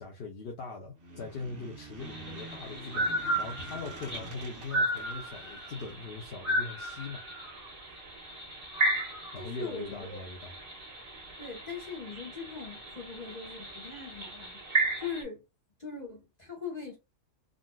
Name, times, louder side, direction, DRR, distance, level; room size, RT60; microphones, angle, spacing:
voice 1, 0.0-3.1 3.4-7.2 9.3-10.5, left 4 dB, 60° left, 0.9 m, -41 dB
sound 1, 1.0-5.9, right 1 dB, 70° right, 1.3 m, -47 dB
sound 2, 2.0-15.2, right 1 dB, 50° right, 1.5 m, -34 dB
voice 2, 9.4-10.2 11.4-15.4 15.8-17.0, left 5 dB, 40° left, 1.1 m, -41 dB
3.8 x 2.5 x 2.2 m
omnidirectional pair, 1.2 m